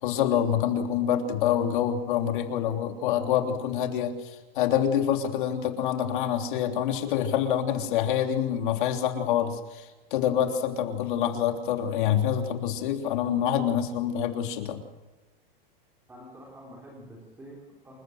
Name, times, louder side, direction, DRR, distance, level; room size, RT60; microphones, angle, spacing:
voice 1, 0.0-14.8, left 9 dB, 55° left, 5 dB, 3.3 m, -26 dB
voice 2, 16.1-18.0, equal, 5° right, -2 dB, 3.6 m, -47 dB
28.0 x 15.0 x 6.5 m, 1.2 s
supercardioid pair, 170°, 29 cm